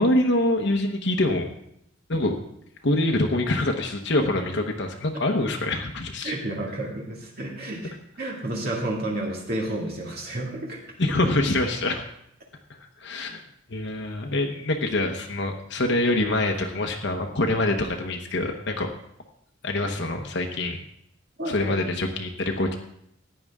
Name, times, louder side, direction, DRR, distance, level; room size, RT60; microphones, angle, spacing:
voice 1, 0.0-1.5 2.1-2.3 2.8-6.3 11.0-12.0 13.0-13.4 13.7-18.9 19.6-20.8 21.4-22.7, left 1 dB, 60° left, 3 dB, 1.1 m, -25 dB
voice 2, 6.2-10.8 21.4-21.7, right 1 dB, 50° right, -2 dB, 2.3 m, -31 dB
14.5 x 9.9 x 3.6 m, 0.75 s
head